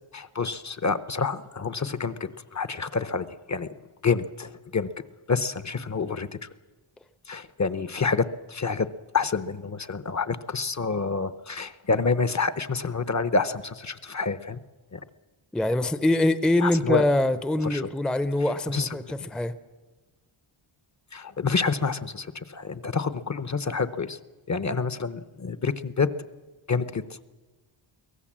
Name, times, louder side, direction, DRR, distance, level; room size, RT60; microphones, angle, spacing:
voice 1, 0.1-3.7 4.0-4.9 5.3-6.5 7.3-8.9 9.1-14.6 14.9-15.0 16.6-17.0 17.7-17.9 18.7-18.9 21.1-24.2 24.5-26.1 26.7-27.2, left 4 dB, 35° left, 14 dB, 0.8 m, -28 dB
voice 2, 15.5-19.5, left 1 dB, ahead, 13 dB, 0.6 m, -24 dB
23.5 x 17.5 x 7.4 m, 1.3 s
wide cardioid pair, 160°, 49 cm